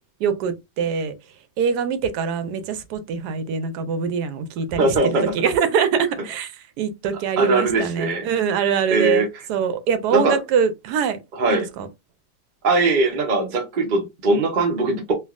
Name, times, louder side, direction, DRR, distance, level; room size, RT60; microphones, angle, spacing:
voice 1, 0.2-1.1 1.6-11.2 11.5-11.9, right 7 dB, 80° right, 1.1 m, -24 dB
voice 2, 4.8-5.3 7.4-8.2 8.9-9.3 10.1-10.4 11.4-11.7 12.6-15.1, right 2 dB, 55° right, 0.5 m, -20 dB
3.3 x 2.6 x 2.3 m
omnidirectional pair, 1.8 m